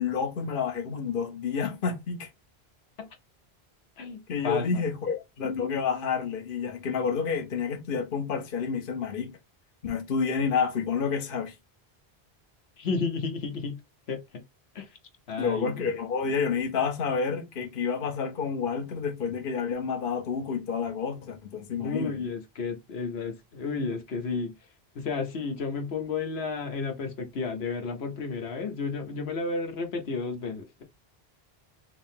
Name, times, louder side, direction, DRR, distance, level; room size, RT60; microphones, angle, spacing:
voice 1, 0.0-2.3 4.3-9.3 9.8-11.5 15.4-22.2, left 6 dB, 60° left, 0.9 m, -29 dB
voice 2, 4.0-4.8 12.8-13.8 14.1-14.2 14.7-14.9 15.3-16.0 21.8-24.5 24.9-30.8, left 4 dB, 80° left, 1.1 m, -32 dB
3.6 x 2.7 x 3.4 m
omnidirectional pair, 1.0 m